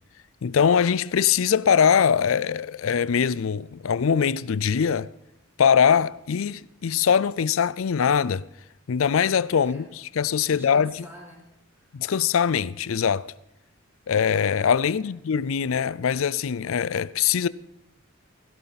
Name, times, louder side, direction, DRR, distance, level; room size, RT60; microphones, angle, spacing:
voice 1, 0.4-5.1 5.6-8.4 8.9-9.8 10.2-11.0 11.9-13.3 14.1-17.5, left 7 dB, 65° left, 0.4 m, -22 dB
voice 2, 9.6-9.9 10.4-12.0 14.9-15.2, equal, 10° right, 4.2 m, -48 dB
17.0 x 16.0 x 4.1 m
head